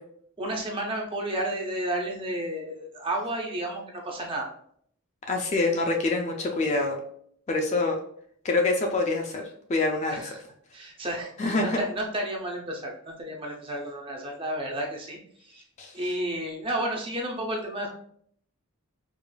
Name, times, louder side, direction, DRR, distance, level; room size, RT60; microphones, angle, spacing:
voice 1, 0.4-4.5 10.1-10.4 10.7-11.3 11.6-15.6 15.9-17.9, right 1 dB, 25° right, 0 dB, 0.5 m, -32 dB
voice 2, 5.3-7.0 7.5-8.0 8.4-10.2 11.4-11.8 15.8-16.1, left 3 dB, 30° left, 2 dB, 0.3 m, -26 dB
4.8 x 2.4 x 2.2 m, 0.65 s
head